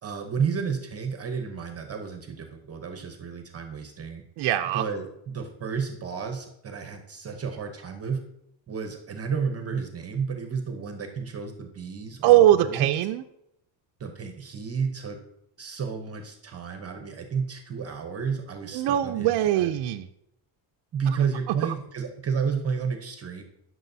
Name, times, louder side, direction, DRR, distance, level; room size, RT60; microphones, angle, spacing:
voice 1, 0.0-4.2 4.7-8.2 8.7-12.9 14.0-15.2 15.6-19.8 20.9-23.4, right 6 dB, 30° right, 5 dB, 0.8 m, -31 dB
voice 2, 4.4-4.8 12.2-13.2 18.7-20.1, right 13 dB, 55° right, 6 dB, 0.5 m, -21 dB
13.0 x 6.2 x 2.7 m, 0.80 s
cardioid pair, 125°, 49 cm